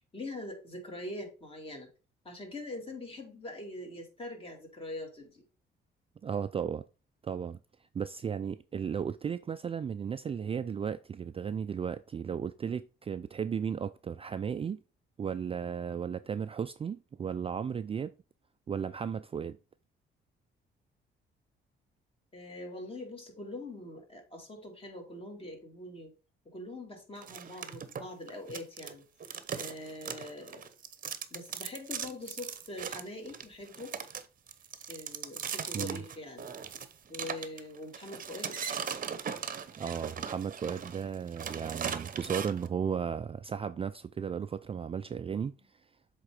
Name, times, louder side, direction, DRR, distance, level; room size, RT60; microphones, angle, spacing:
voice 1, 0.1-1.9 2.2-5.4 22.3-26.1 26.4-29.0 29.5-30.6 31.3-33.9 34.9-36.5 37.1-38.6, left 1 dB, 30° left, 2.6 m, -43 dB
voice 2, 6.2-6.8 7.2-7.6 7.9-14.8 15.2-18.1 18.7-19.6 35.7-36.0 39.8-45.5, right 7 dB, 30° right, 0.3 m, -35 dB
sound 1, 27.2-28.9 29.2-42.7, right 7 dB, 45° right, 0.8 m, -39 dB
7.5 x 3.7 x 4.8 m
cardioid pair, 90°, 20 cm